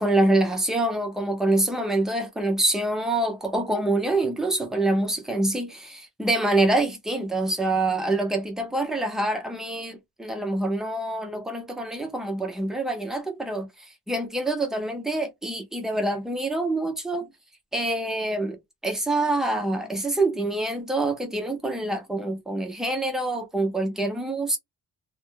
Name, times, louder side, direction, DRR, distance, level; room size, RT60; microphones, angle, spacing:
voice 1, 0.0-17.3 17.7-24.6, right 2 dB, ahead, 0.3 m, -26 dB
2.2 x 2.0 x 3.0 m
cardioid pair, 175°, 30 cm